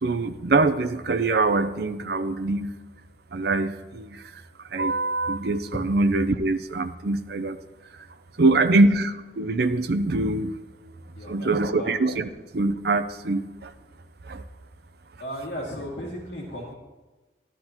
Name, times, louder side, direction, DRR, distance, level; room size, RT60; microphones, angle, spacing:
voice 1, 0.0-2.7 3.3-4.4 4.7-7.6 7.9-8.0 8.4-10.5 11.3-12.3 12.5-13.7 14.2-14.4, right 2 dB, 60° right, 9 dB, 0.6 m, -24 dB
voice 2, 8.3-8.8 11.2-11.9 15.2-16.7, equal, 65° left, -3 dB, 2.3 m, -36 dB
12.5 x 12.0 x 2.9 m, 1.2 s
head